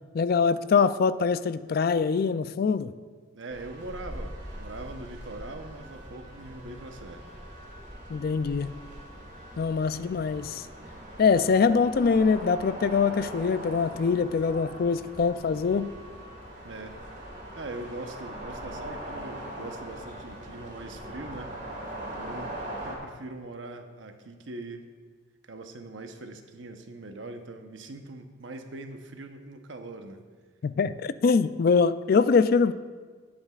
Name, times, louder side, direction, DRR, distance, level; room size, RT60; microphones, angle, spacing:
voice 1, 0.1-2.9 8.1-8.8 9.6-10.6 11.2-15.9 30.6-32.7, left 5 dB, 50° left, 0.3 m, -23 dB
voice 2, 3.3-7.3 16.6-17.0 17.5-24.9 25.5-30.2, right 2 dB, 80° right, 0.9 m, -42 dB
sound 1, 3.5-23.0, right 1 dB, 45° right, 2.4 m, -41 dB
18.0 x 8.5 x 2.4 m
head